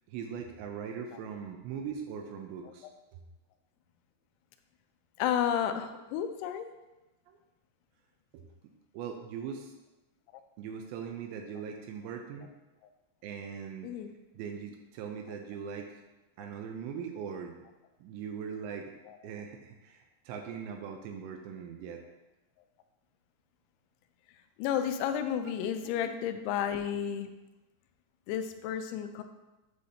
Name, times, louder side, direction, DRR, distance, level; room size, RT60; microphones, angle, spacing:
voice 1, 0.1-3.2 7.3-7.4 8.3-8.5 8.9-9.7 10.6-12.5 13.2-13.9 14.3-16.0 16.4-17.6 18.0-18.9 19.2-22.0 25.4-26.2, right 7 dB, 80° right, 3 dB, 2.7 m, -41 dB
voice 2, 5.2-6.7 13.8-14.1 24.6-27.3 28.3-29.2, left 9 dB, 85° left, 8 dB, 2.9 m, -31 dB
8.4 x 7.8 x 2.8 m, 1.0 s
omnidirectional pair, 5.4 m